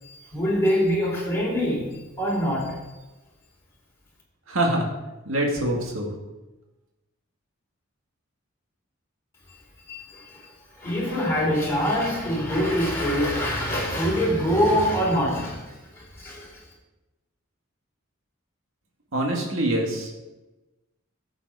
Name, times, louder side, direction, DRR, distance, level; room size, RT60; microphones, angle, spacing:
voice 1, 0.0-1.9 2.2-2.8 9.9-10.5 10.8-15.6 16.0-16.6, equal, 10° left, -5 dB, 3.6 m, -24 dB
voice 2, 4.5-4.9 5.3-6.1 19.1-20.2, right 1 dB, 70° right, 0 dB, 2.0 m, -24 dB
11.0 x 7.6 x 4.8 m, 1.1 s
head